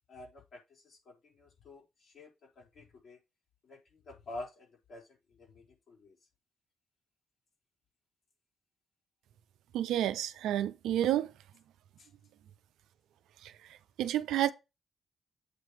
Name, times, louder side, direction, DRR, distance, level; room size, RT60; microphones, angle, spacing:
voice 1, 0.1-2.3 2.6-3.2 3.6-5.0 5.3-6.2 12.0-12.1, left 2 dB, 60° left, 4.2 m, -49 dB
voice 2, 9.7-11.3 13.4-13.5 14.0-14.5, right 12 dB, 80° right, 0.6 m, -30 dB
8.4 x 3.2 x 6.2 m
hypercardioid pair, 45°, 0 cm